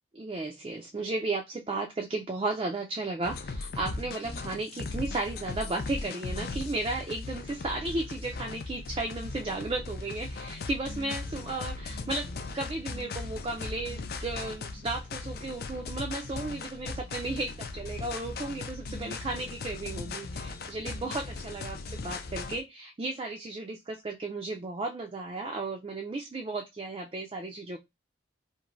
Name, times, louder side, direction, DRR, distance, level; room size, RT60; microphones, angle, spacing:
voice 1, 0.1-27.8, right 2 dB, 25° right, 0.3 m, -34 dB
sound 1, 3.2-22.6, left 3 dB, 50° left, 0.4 m, -38 dB
3.1 x 2.5 x 2.4 m
head